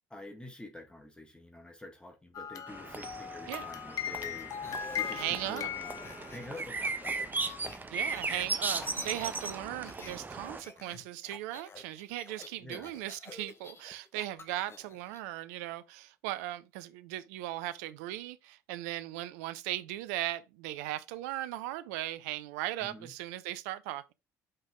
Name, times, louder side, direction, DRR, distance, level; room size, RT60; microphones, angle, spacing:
voice 1, 0.1-5.9 6.3-7.3 12.6-12.9 22.8-23.1, left 1 dB, 10° left, 1.7 m, -48 dB
sound 1, 2.3-6.6 7.4-7.6, left 9 dB, 45° left, 0.9 m, -39 dB
sound 2, 2.7-10.6, right 3 dB, 20° right, 1.0 m, -37 dB
sound 3, 4.4-10.2 10.5-15.2, left 4 dB, 30° left, 1.3 m, -50 dB
voice 2, 5.1-5.7 7.9-24.0, right 15 dB, 70° right, 0.5 m, -38 dB
5.5 x 5.3 x 3.6 m
figure-of-eight pair, 55°, 9 cm